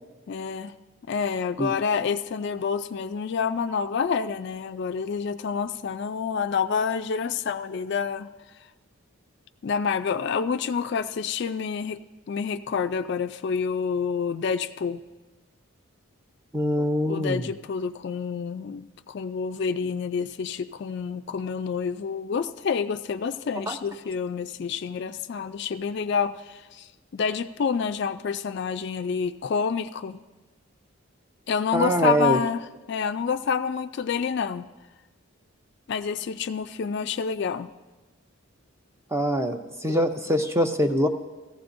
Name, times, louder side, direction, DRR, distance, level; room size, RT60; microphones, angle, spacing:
voice 1, 0.3-0.7 1.1-8.3 9.6-12.0 12.3-15.0 16.8-30.2 31.5-34.7 35.9-37.7, left 6 dB, 50° left, 10 dB, 0.3 m, -28 dB
voice 2, 16.5-17.5 23.7-23.8 31.7-32.4 39.1-41.1, equal, 10° right, 6 dB, 0.5 m, -24 dB
17.0 x 15.0 x 2.6 m, 1.2 s
head